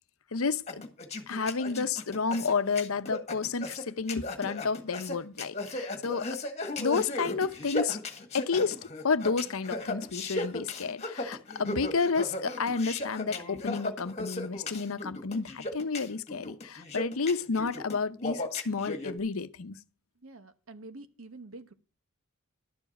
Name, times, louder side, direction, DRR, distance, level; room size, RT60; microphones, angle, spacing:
voice 1, 0.3-0.9 1.3-6.3 6.8-8.0 8.3-8.8 9.0-19.8, left 4 dB, 80° left, 0.8 m, -31 dB
sound 1, 0.7-19.1, left 2 dB, 30° left, 1.7 m, -36 dB
voice 2, 20.2-21.7, right 2 dB, 75° right, 1.2 m, -47 dB
11.5 x 7.2 x 5.8 m
head